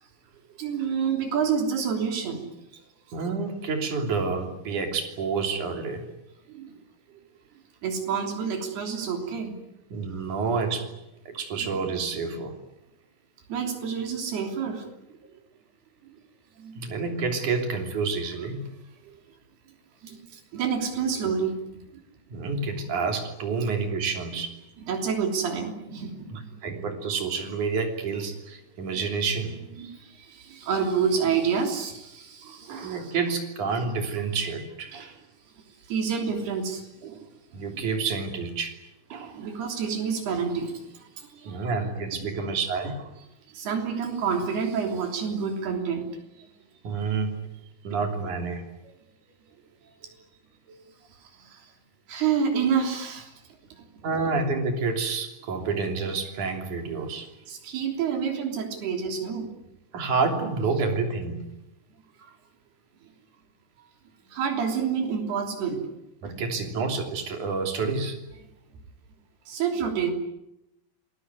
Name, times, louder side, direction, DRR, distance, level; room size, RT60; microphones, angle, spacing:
voice 1, 0.6-2.5 6.5-6.7 7.8-9.6 11.6-11.7 13.5-14.9 16.6-16.8 19.0-19.1 20.0-21.6 24.8-26.8 29.8-33.1 35.9-36.8 37.7-37.8 39.3-41.6 42.1-42.2 43.5-46.1 47.9-48.0 50.0-50.1 50.7-50.8 51.4-51.6 52.1-53.3 57.5-59.5 64.3-65.9 66.3-66.4 69.5-70.1, right 6 dB, 80° right, 4 dB, 5.3 m, -28 dB
voice 2, 3.1-6.1 9.9-11.0 11.3-12.6 16.8-18.7 22.3-24.5 26.3-29.7 32.5-35.2 37.0-37.3 37.5-38.7 39.1-39.4 41.4-43.1 46.8-47.4 47.8-48.6 54.0-57.3 59.9-61.4 66.2-68.2, right 4 dB, 50° right, 4 dB, 4.4 m, -29 dB
28.0 x 20.0 x 9.7 m, 0.88 s
omnidirectional pair, 4.5 m